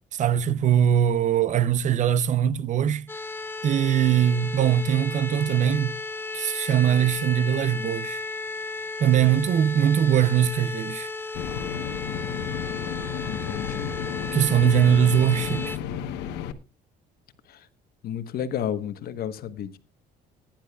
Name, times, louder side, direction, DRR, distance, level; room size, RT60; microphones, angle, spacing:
voice 1, 0.1-3.1 3.6-6.0 6.3-8.2 9.0-11.1 14.3-15.8, right 9 dB, 45° right, 0.6 m, -21 dB
sound 1, 3.1-15.8, left 3 dB, 15° left, 0.8 m, -34 dB
sound 2, 11.3-16.5, left 9 dB, 85° left, 1.1 m, -32 dB
voice 2, 13.2-14.0 17.4-17.7 18.0-19.8, left 9 dB, 65° left, 1.1 m, -32 dB
20.0 x 10.5 x 2.3 m
cardioid pair, 110°, 17 cm